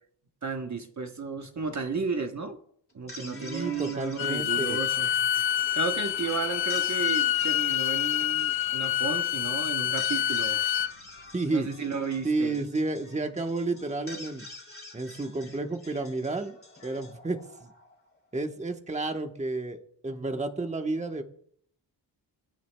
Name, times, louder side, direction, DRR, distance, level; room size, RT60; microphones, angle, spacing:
voice 1, 0.4-2.6 2.9-5.5 5.7-10.6 11.5-12.6, right 5 dB, 40° right, 4 dB, 1.1 m, -33 dB
sound 1, 2.9-18.1, left 2 dB, 30° left, 2.8 m, -48 dB
voice 2, 3.2-4.8 11.3-11.7 12.2-14.5 14.9-16.6 16.8-17.7 18.3-21.2, right 2 dB, 15° right, 5 dB, 1.1 m, -31 dB
Bowed string instrument, 4.2-10.9, left 11 dB, 80° left, 0.6 m, -27 dB
27.0 x 9.5 x 2.3 m, 0.65 s
wide cardioid pair, 100°, 45 cm